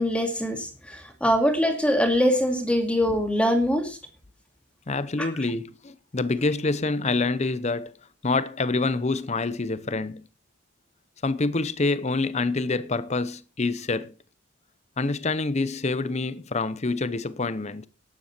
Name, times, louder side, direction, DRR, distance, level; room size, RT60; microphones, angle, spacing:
voice 1, 0.0-4.0, equal, 5° left, 2.3 m, -23 dB
voice 2, 4.9-8.0 8.2-10.2 11.2-14.1 15.0-17.9, left 3 dB, 35° left, 0.7 m, -26 dB
12.5 x 10.0 x 4.4 m
head